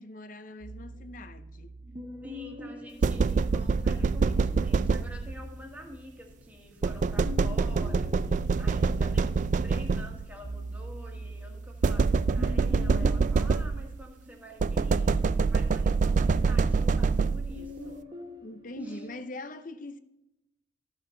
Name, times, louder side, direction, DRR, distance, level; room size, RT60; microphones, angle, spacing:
voice 1, 0.0-1.8 18.4-20.0, left 2 dB, 45° left, 0.7 m, -42 dB
sound 1, 0.6-4.1 5.1-9.5 9.9-19.2, left 1 dB, 25° right, 1.2 m, -44 dB
voice 2, 2.2-18.0 18.8-19.0, left 1 dB, 10° right, 1.6 m, -48 dB
sound 2, 3.0-5.5 6.8-10.4 11.8-14.0 14.6-17.7, right 4 dB, 45° right, 0.3 m, -25 dB
14.0 x 5.7 x 3.9 m
head